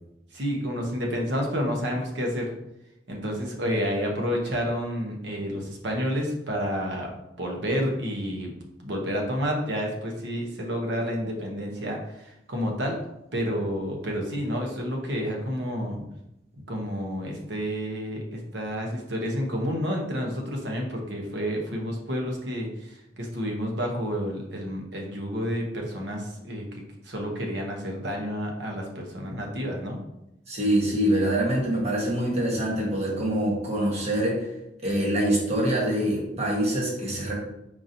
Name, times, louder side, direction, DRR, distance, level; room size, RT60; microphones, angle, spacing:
voice 1, 0.3-2.5 3.1-7.1 7.4-8.5 8.8-13.0 13.3-16.0 16.7-26.7 27.0-30.0, equal, 70° right, 1 dB, 0.8 m, -30 dB
voice 2, 30.5-34.5 34.8-37.3, right 1 dB, 35° right, -3 dB, 1.1 m, -25 dB
4.6 x 2.6 x 2.7 m, 0.87 s
head